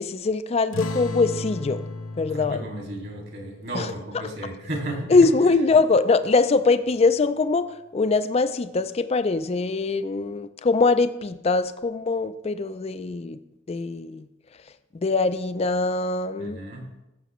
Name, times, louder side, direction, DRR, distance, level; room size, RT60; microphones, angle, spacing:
voice 1, 0.0-1.8 2.2-2.7 3.7-3.9 5.1-7.7 7.9-13.4 13.7-14.3 15.0-16.6, left 3 dB, 30° left, 12 dB, 0.4 m, -22 dB
sound 1, 0.7-5.7, left 3 dB, 85° left, 0.7 m, -36 dB
voice 2, 2.3-5.3 16.4-16.9, right 1 dB, 55° right, 0 dB, 2.1 m, -34 dB
15.0 x 6.7 x 3.1 m, 0.94 s
head